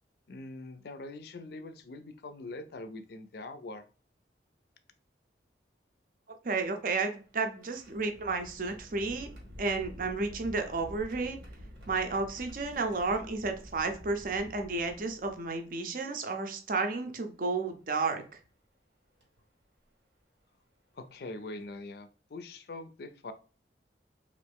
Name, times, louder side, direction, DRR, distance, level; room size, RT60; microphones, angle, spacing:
voice 1, 0.3-3.9 20.9-23.3, left 2 dB, 60° left, 10 dB, 0.4 m, -43 dB
voice 2, 6.4-9.3 9.6-11.4 11.9-18.4, right 3 dB, 50° right, 6 dB, 0.5 m, -32 dB
sound 1, 6.5-15.8 16.7-16.8 18.2-18.4 19.2-19.4 21.0-21.1 21.5-21.8, equal, 90° right, 1.2 m, -49 dB
3.0 x 2.5 x 3.5 m, 0.37 s
head